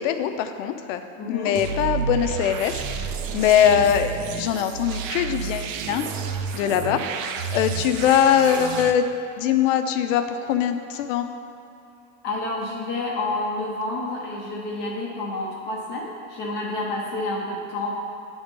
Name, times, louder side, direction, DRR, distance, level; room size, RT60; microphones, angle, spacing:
voice 1, 0.0-1.0 1.3-3.0 3.3-6.1 6.5-9.0 9.4-11.3, left 9 dB, 70° left, 8 dB, 0.6 m, -22 dB
voice 2, 1.2-1.6 12.2-17.9, left 2 dB, 25° left, -3 dB, 0.6 m, -29 dB
sound 1, 1.6-8.9, right 6 dB, 70° right, 0.6 m, -30 dB
10.0 x 3.5 x 5.2 m, 2.7 s
supercardioid pair, 175°, 40 cm